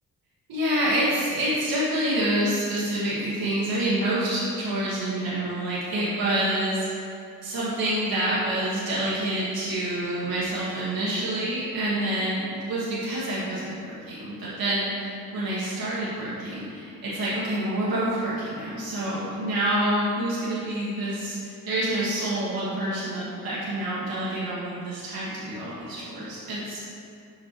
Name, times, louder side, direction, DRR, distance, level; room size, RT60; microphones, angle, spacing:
voice 1, 0.5-7.1 7.4-26.8, right 1 dB, 90° right, -9 dB, 1.4 m, -27 dB
7.3 x 6.2 x 3.0 m, 2.5 s
cardioid pair, 80°, 35 cm